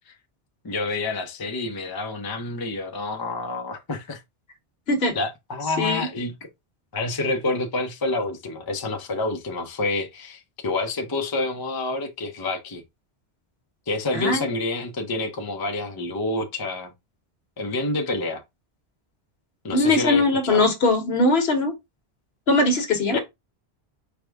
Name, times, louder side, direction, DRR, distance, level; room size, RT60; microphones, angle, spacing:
voice 1, 0.6-4.2 5.1-6.3 6.9-12.8 13.9-16.9 17.6-18.4 19.6-20.7 23.1-23.2, left 2 dB, 25° left, 0.5 m, -28 dB
voice 2, 14.1-14.5 19.7-21.7 22.5-23.2, left 2 dB, 70° left, 1.3 m, -20 dB
4.8 x 2.2 x 3.4 m
omnidirectional pair, 1.1 m